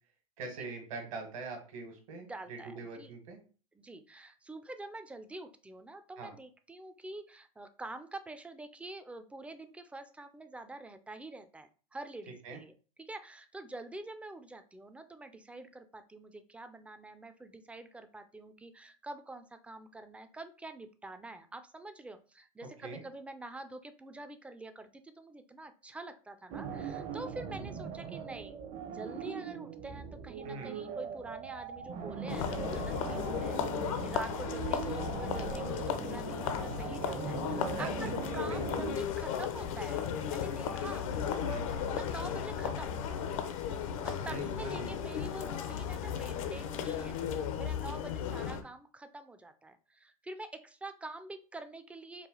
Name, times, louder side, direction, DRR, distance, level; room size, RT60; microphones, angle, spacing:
voice 1, 0.4-3.4 6.2-6.3 12.4-12.6 22.8-23.0 30.4-30.8 37.8-38.2 38.5-38.8 41.4-41.7 44.2-45.0, right 3 dB, 65° right, 4 dB, 1.6 m, -43 dB
voice 2, 2.1-3.1 3.7-28.6 28.8-33.6 34.0-41.1 41.9-43.0 44.0-47.2 47.6-52.3, right 2 dB, 5° right, 9 dB, 0.4 m, -46 dB
sound 1, 26.5-39.0, right 6 dB, 40° right, 0.8 m, -40 dB
sound 2, 32.3-48.6, left 8 dB, 65° left, 0.7 m, -35 dB
4.8 x 2.3 x 3.8 m, 0.38 s
hypercardioid pair, 105°, 19 cm